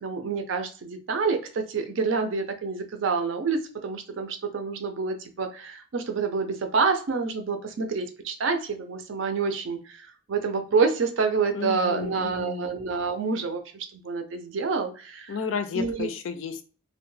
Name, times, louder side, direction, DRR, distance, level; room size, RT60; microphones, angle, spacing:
voice 1, 0.0-15.3 15.7-16.1, right 4 dB, 70° right, 6 dB, 0.5 m, -28 dB
voice 2, 11.5-12.6 15.3-16.6, left 6 dB, 70° left, 9 dB, 0.4 m, -32 dB
2.2 x 2.0 x 3.1 m, 0.39 s
head